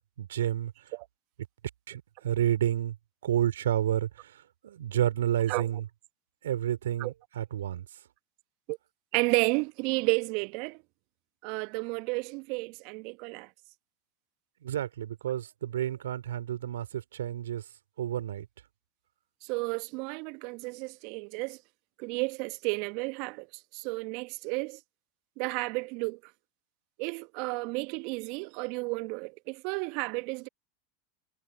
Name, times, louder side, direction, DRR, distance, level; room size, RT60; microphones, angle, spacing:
voice 1, 0.2-0.7 1.9-2.9 3.2-4.3 4.6-5.8 6.4-7.8 14.6-17.6 18.0-18.5, right 11 dB, 70° right, 3.2 m, -30 dB
voice 2, 9.1-10.8 11.4-13.5 19.4-21.6 22.0-23.5 23.7-24.8 25.4-26.2 27.0-30.5, right 29 dB, 55° right, 1.2 m, -32 dB
figure-of-eight pair, 85°, 0 cm